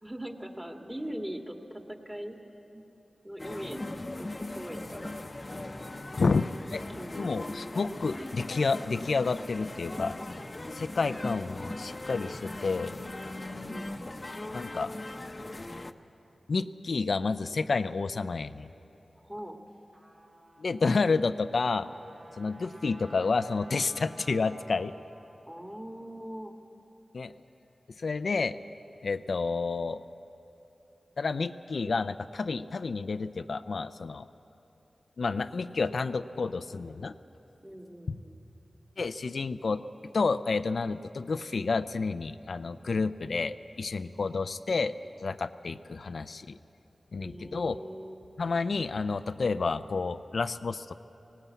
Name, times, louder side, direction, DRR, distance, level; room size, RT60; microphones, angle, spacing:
voice 1, 0.0-2.4 2.7-2.8 3.2-5.1 7.0-7.5 10.9-12.1 13.7-14.0 19.2-19.6 25.5-26.6 37.6-38.4 47.2-48.2, equal, 15° right, 3 dB, 2.0 m, -41 dB
sound 1, 3.4-15.9, left 2 dB, 35° left, 0.8 m, -39 dB
voice 2, 7.1-10.2 10.7-12.9 14.5-14.9 16.5-18.7 20.6-21.9 22.4-24.9 27.1-27.3 28.0-28.6 29.0-30.1 31.2-34.3 35.2-37.1 39.0-39.8 40.1-44.9 45.2-46.6 47.1-47.8 48.4-50.9, left 4 dB, 75° left, 10 dB, 0.4 m, -30 dB
Trumpet, 19.7-25.6, right 1 dB, 45° right, 4.1 m, -54 dB
19.5 x 18.0 x 8.3 m, 3.0 s
cardioid pair, 50°, 0 cm